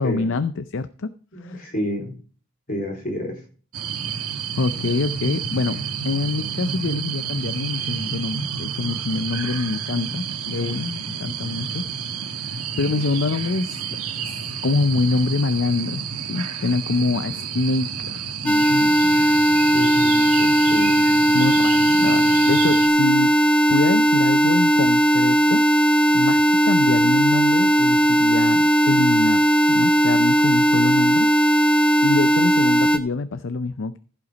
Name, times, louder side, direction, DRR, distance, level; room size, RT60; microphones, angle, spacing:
voice 1, 0.0-1.1 1.4-1.6 4.1-4.3 4.6-5.8 6.0-11.8 12.4-13.8 14.2-18.9 20.2-20.6 21.3-25.6 26.1-31.3 32.0-34.0, left 3 dB, 55° left, 12 dB, 0.5 m, -25 dB
voice 2, 1.3-2.1 2.7-3.3 19.0-19.2 19.7-20.3 20.7-21.0, equal, 40° left, 0 dB, 3.9 m, -29 dB
sound 1, 3.7-22.9, right 7 dB, 85° right, 1.3 m, -30 dB
sound 2, 18.5-33.0, right 1 dB, 5° left, 0.6 m, -17 dB
15.0 x 5.8 x 5.1 m, 0.41 s
head